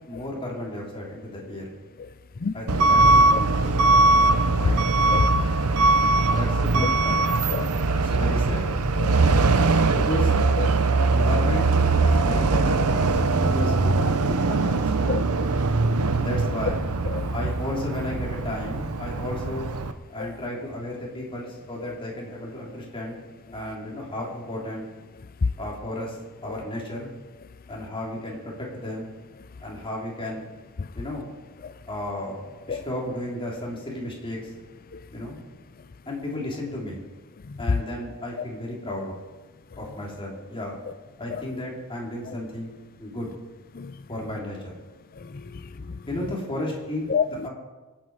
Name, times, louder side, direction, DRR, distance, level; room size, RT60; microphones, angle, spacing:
voice 1, 0.1-1.6 2.5-3.8 4.6-4.8 6.3-7.3 8.0-8.7 9.9-10.3 11.1-11.7 12.0-13.1 13.4-15.2 16.2-16.8 17.3-19.7 20.1-23.2 23.5-24.8 25.6-26.2 26.4-27.1 27.7-29.1 29.6-30.5 31.0-31.3 31.9-32.4 32.7-34.5 35.1-35.4 36.1-37.0 37.6-39.1 39.8-40.8 41.2-42.7 43.0-43.3 44.1-44.7 46.1-47.0 47.4-47.5, left 1 dB, 25° left, 3.7 m, -33 dB
voice 2, 2.4-2.8 3.3-3.4 5.1-5.3 7.5-7.7 9.0-9.2 10.6-10.7 13.4-13.5 15.1-15.5 17.1-17.3 20.2-20.3 26.5-26.6 30.8-30.9 31.6-31.7 32.7-32.8 34.9-35.0 41.3-41.4 43.7-43.9 45.2-46.0 47.1-47.2, left 5 dB, 40° left, 0.5 m, -30 dB
Truck / Alarm, 2.7-19.9, right 3 dB, 85° right, 0.9 m, -21 dB
24.5 x 8.9 x 5.0 m
head